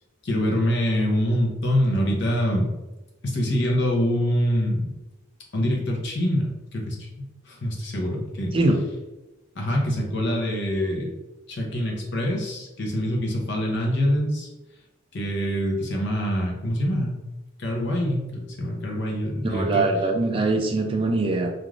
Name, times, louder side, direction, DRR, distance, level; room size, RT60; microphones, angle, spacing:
voice 1, 0.2-2.7 3.2-4.9 5.5-8.5 9.6-11.1 11.5-14.5 15.1-17.2 17.6-19.8, equal, 55° left, 0 dB, 0.7 m, -25 dB
voice 2, 19.4-21.5, right 2 dB, 25° right, 3 dB, 0.3 m, -22 dB
3.2 x 2.4 x 2.4 m, 1.0 s
head